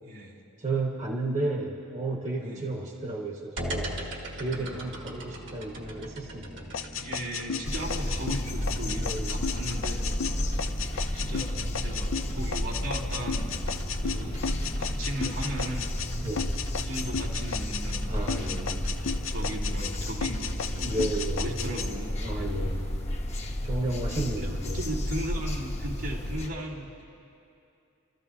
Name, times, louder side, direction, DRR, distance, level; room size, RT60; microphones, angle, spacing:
voice 1, 0.0-0.4 2.4-2.7 4.5-4.8 6.9-10.1 10.8-13.6 14.0-14.4 14.8-15.9 16.8-22.5 24.1-27.0, right 1 dB, 90° right, -6 dB, 2.7 m, -37 dB
voice 2, 0.6-6.7 9.0-9.3 16.2-16.5 18.1-18.8 20.8-21.7 22.2-22.8 23.6-24.8, right 2 dB, 35° right, 0 dB, 1.2 m, -33 dB
sound 1, 3.6-21.0, equal, 65° right, 1.7 m, -41 dB
sound 2, 6.7-16.1 16.4-18.0 18.3-19.9 20.2-21.9, left 6 dB, 80° left, 0.6 m, -34 dB
sound 3, 7.6-26.5, left 1 dB, 35° left, 1.0 m, -32 dB
29.0 x 14.0 x 2.8 m, 2.6 s
head